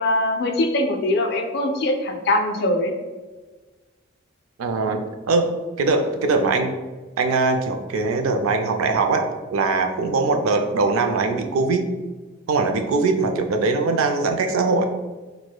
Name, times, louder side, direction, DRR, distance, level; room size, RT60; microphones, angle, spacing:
voice 1, 0.0-2.9, left 1 dB, 50° left, 4 dB, 0.4 m, -22 dB
voice 2, 4.6-5.5 5.8-6.7 7.2-11.9 12.5-14.8, right 3 dB, 80° right, 5 dB, 0.4 m, -21 dB
4.5 x 2.1 x 2.2 m, 1.3 s
head